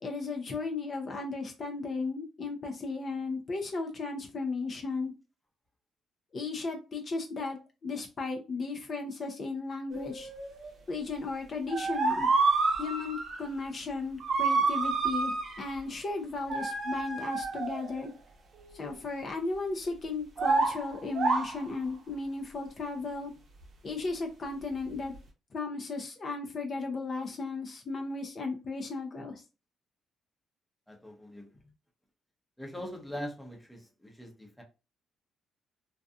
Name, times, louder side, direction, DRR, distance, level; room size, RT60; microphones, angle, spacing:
voice 1, 0.0-5.1 6.3-10.3 10.9-12.3 12.8-18.1 18.7-23.3 23.8-25.1 25.5-29.4, left 3 dB, 45° left, 0.5 m, -35 dB
sound 1, 9.9-10.7 11.7-13.4 14.2-15.7 16.5-18.1 20.4-21.6, right 4 dB, 55° right, 0.7 m, -29 dB
voice 2, 30.9-31.5 32.6-34.6, equal, 5° left, 0.7 m, -42 dB
2.6 x 2.3 x 2.3 m
cardioid pair, 90°, 0 cm